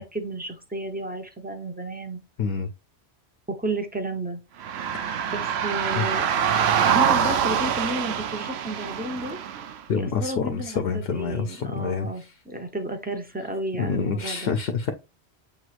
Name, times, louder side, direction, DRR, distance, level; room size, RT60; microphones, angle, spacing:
voice 1, 0.1-2.2 3.5-4.4 5.3-6.3 6.8-9.4 10.0-14.5, right 1 dB, 10° right, 0.6 m, -32 dB
voice 2, 2.4-2.7 4.9-5.3 5.9-6.1 9.9-12.3 13.8-14.9, left 5 dB, 65° left, 0.7 m, -27 dB
sound 1, 4.6-9.8, right 8 dB, 75° right, 0.8 m, -24 dB
7.1 x 3.1 x 2.4 m
omnidirectional pair, 1.1 m